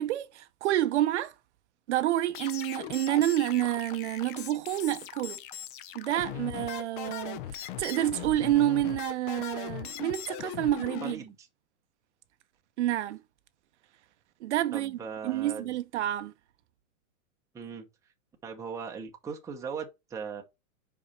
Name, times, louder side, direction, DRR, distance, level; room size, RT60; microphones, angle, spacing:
voice 1, 0.0-1.3 1.9-5.4 5.9-11.2 12.8-13.2 14.4-15.0 15.2-16.3, right 13 dB, 55° right, 0.6 m, -28 dB
sound 1, 2.3-11.1, left 11 dB, 40° left, 0.5 m, -39 dB
voice 2, 11.0-11.5 14.7-15.7 17.5-17.8 18.4-20.4, right 6 dB, 10° right, 0.8 m, -39 dB
5.4 x 4.9 x 4.2 m
hypercardioid pair, 150°, 41 cm